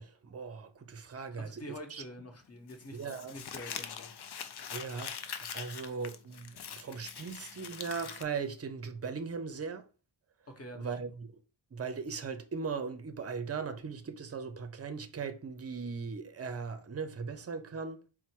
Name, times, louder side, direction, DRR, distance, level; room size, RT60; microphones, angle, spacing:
voice 1, 0.0-1.6 1.9-2.0 2.9-3.3 4.7-9.9 10.8-11.4 11.7-18.0, right 5 dB, 35° right, 0.5 m, -39 dB
voice 2, 1.4-3.0 3.3-4.1 10.6-11.0, equal, 30° left, 1.1 m, -46 dB
Crumpling crinkling, 2.7-8.2, left 7 dB, 60° left, 0.5 m, -43 dB
4.3 x 2.1 x 4.4 m
wide cardioid pair, 80°, 46 cm